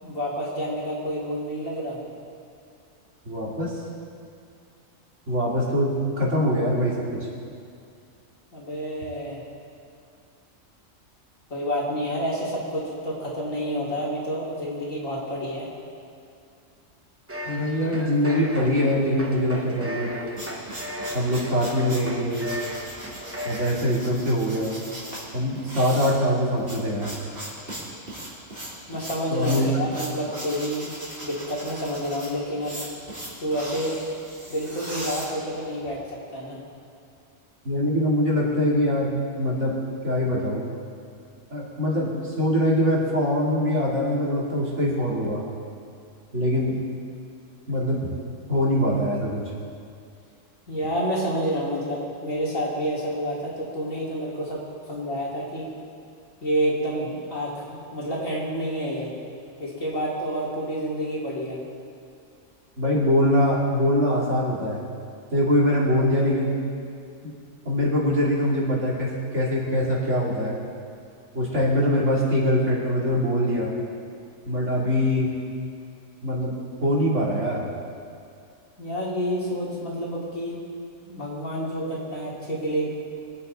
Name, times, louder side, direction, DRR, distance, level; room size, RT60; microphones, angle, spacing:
voice 1, 0.0-2.0 8.5-9.4 11.5-15.7 28.9-30.9 31.2-32.7 33.4-34.0 34.5-36.0 36.3-36.6 50.7-55.7 56.4-59.1 59.6-61.6 78.8-80.6 81.0-82.9, equal, 80° left, -6 dB, 3.2 m, -29 dB
voice 2, 3.2-3.8 5.3-7.3 17.4-20.1 21.1-22.5 23.4-24.7 25.3-27.1 29.3-29.7 37.6-39.7 40.0-40.6 41.5-45.4 46.3-46.8 47.7-48.1 48.5-49.4 62.8-64.8 65.3-66.5 67.2-67.3 67.6-70.6 71.3-73.7 74.4-75.3 76.2-76.5 76.8-77.7, equal, 65° right, -5 dB, 2.9 m, -23 dB
sound 1, 17.3-23.8, equal, 15° right, 0.7 m, -36 dB
sound 2, 20.1-35.9, right 1 dB, 45° right, 3.4 m, -38 dB
22.0 x 8.6 x 4.1 m, 2.3 s
omnidirectional pair, 1.4 m